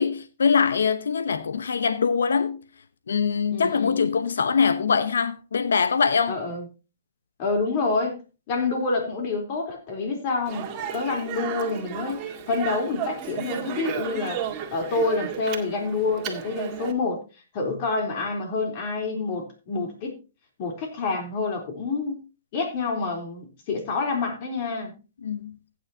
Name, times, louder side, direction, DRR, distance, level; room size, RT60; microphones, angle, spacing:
voice 1, 0.0-2.6 3.1-6.4 25.2-25.6, left 6 dB, 85° left, 0.9 m, -23 dB
voice 2, 3.5-4.1 6.3-6.7 7.4-8.2 8.5-12.2 12.5-14.4 14.7-17.2 17.5-20.1 20.6-22.2 22.5-24.9, left 3 dB, 40° left, 3.8 m, -27 dB
Speech, 10.4-16.9, right 9 dB, 25° right, 2.0 m, -34 dB
15.5 x 9.5 x 2.8 m
hypercardioid pair, 150°, 0 cm